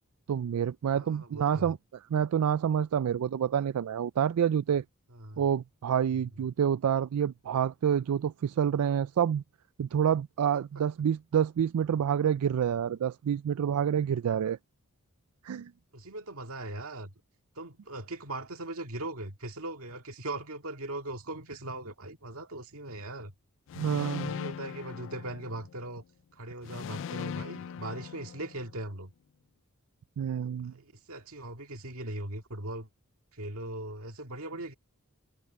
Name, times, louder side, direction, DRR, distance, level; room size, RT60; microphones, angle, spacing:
voice 1, 0.3-1.8 2.1-4.8 5.4-9.4 9.8-14.6 15.4-15.7 23.7-24.3 30.2-30.7, right 8 dB, 90° right, 0.4 m, -28 dB
voice 2, 0.9-1.7 5.1-5.4 15.9-17.1 17.6-23.3 23.9-26.0 26.3-29.1 30.6-32.9 33.3-34.7, right 1 dB, 70° right, 2.2 m, -39 dB
sound 1, 23.7-25.9 26.6-28.8, left 7 dB, 60° left, 0.3 m, -40 dB
head